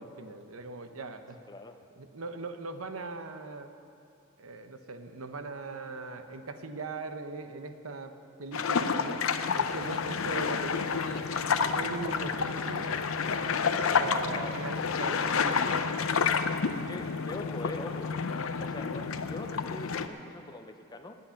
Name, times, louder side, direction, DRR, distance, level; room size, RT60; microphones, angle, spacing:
voice 1, 0.0-1.4 2.0-3.7 4.4-8.1 8.4-9.2 9.5-11.3 11.7-12.9 13.9-15.9, right 3 dB, 85° right, 8 dB, 0.9 m, -40 dB
voice 2, 1.5-1.8 14.3-14.6 16.9-18.1 18.6-21.1, left 2 dB, 20° left, 7 dB, 0.6 m, -42 dB
sound 1, 8.5-20.1, left 5 dB, 75° left, 0.6 m, -29 dB
20.0 x 8.8 x 5.8 m, 2.6 s
head